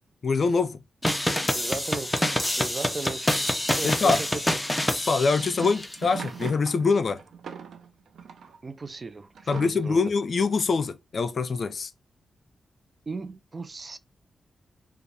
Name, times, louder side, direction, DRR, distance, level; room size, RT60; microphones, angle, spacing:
voice 1, 0.2-0.8 3.8-4.2 5.1-7.2 9.5-11.9, left 4 dB, 60° left, 0.5 m, -24 dB
sound 1, 1.0-6.0, left 1 dB, 10° left, 0.9 m, -27 dB
voice 2, 1.5-2.2 2.6-3.5 3.8-4.6 8.6-10.0 13.1-14.0, right 3 dB, 40° right, 0.5 m, -36 dB
sound 2, 5.0-8.6 9.4-10.1, right 6 dB, 80° right, 0.6 m, -41 dB
5.0 x 2.4 x 3.3 m
cardioid pair, 65°, 0 cm